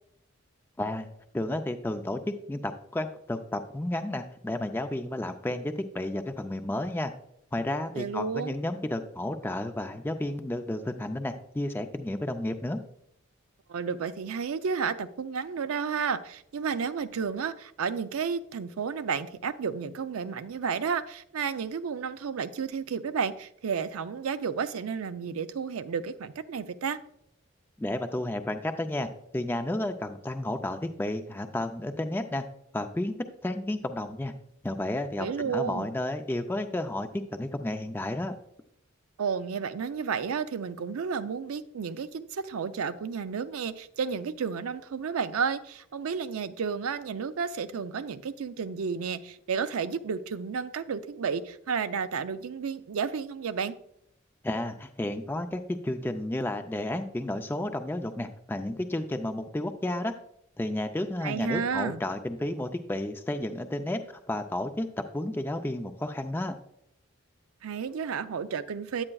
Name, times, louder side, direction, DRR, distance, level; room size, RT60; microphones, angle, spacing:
voice 1, 0.8-1.1 1.3-2.2 2.5-7.1 7.5-12.8 27.8-32.4 32.7-33.2 33.4-34.3 34.6-38.3 54.4-60.1 60.6-64.0 64.3-64.9 65.1-66.6, left 1 dB, 10° left, 6 dB, 0.3 m, -32 dB
voice 2, 7.9-8.5 13.7-27.0 35.2-35.9 39.2-53.8 61.2-62.0 67.6-69.0, right 6 dB, 85° right, 11 dB, 0.4 m, -32 dB
9.6 x 8.7 x 2.3 m, 0.75 s
head